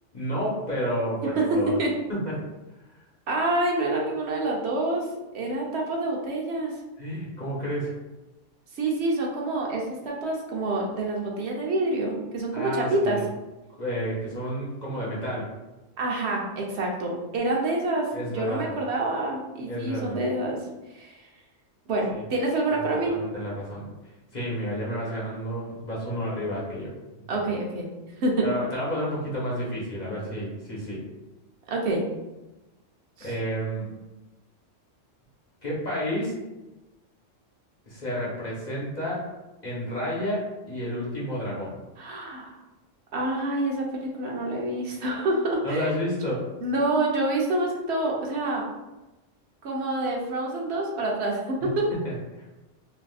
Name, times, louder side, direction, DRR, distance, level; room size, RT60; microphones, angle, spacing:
voice 1, 0.1-1.8 2.1-2.3 7.0-7.9 12.5-13.2 13.8-15.5 18.1-18.7 19.7-20.2 22.1-22.2 22.7-23.9 24.3-27.4 28.4-31.0 33.2-33.9 35.6-36.4 37.9-39.3 39.6-41.8 45.6-46.5 52.0-52.5, equal, 40° left, -6 dB, 0.9 m, -31 dB
voice 2, 3.3-5.1 5.3-6.7 8.8-13.2 16.0-20.6 20.9-21.1 21.9-23.1 27.3-27.9 28.2-28.5 31.7-32.0 33.2-33.3 42.0-42.5 43.1-45.9 46.6-48.6 49.6-51.9, right 2 dB, 65° right, -1 dB, 0.9 m, -27 dB
3.4 x 2.5 x 2.3 m, 1.1 s
omnidirectional pair, 1.3 m